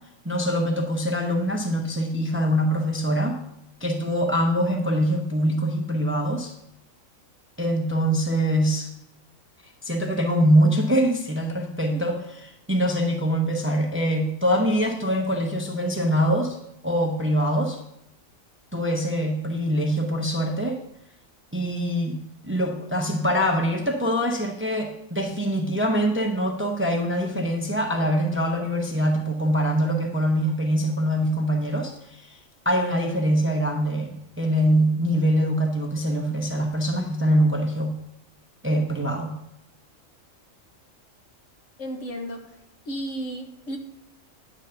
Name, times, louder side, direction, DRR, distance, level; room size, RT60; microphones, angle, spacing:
voice 1, 0.2-3.4 3.8-6.5 7.6-8.9 9.8-12.2 12.7-16.6 16.8-17.8 18.7-20.8 21.5-22.2 22.5-32.4 32.6-38.0 38.6-39.4, equal, 10° right, 2 dB, 0.7 m, -23 dB
voice 2, 41.8-42.4 42.8-43.8, right 1 dB, 65° left, 3 dB, 1.5 m, -33 dB
9.8 x 4.0 x 6.8 m, 0.81 s
omnidirectional pair, 1.4 m